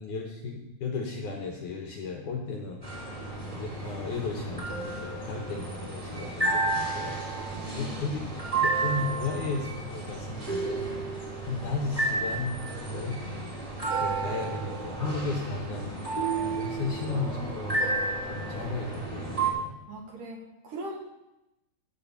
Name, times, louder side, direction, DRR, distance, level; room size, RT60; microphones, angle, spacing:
voice 1, 0.0-2.8 3.4-7.2 7.8-8.2 8.6-10.8 11.4-13.2 14.0-17.9 18.3-19.7, left 3 dB, 70° left, 1 dB, 2.1 m, -34 dB
sound 1, 2.8-19.5, right 3 dB, 10° right, 2.4 m, -32 dB
voice 2, 7.5-8.0 19.9-21.0, right 1 dB, 60° right, 0 dB, 3.0 m, -40 dB
14.0 x 5.2 x 7.0 m, 0.93 s
omnidirectional pair, 4.5 m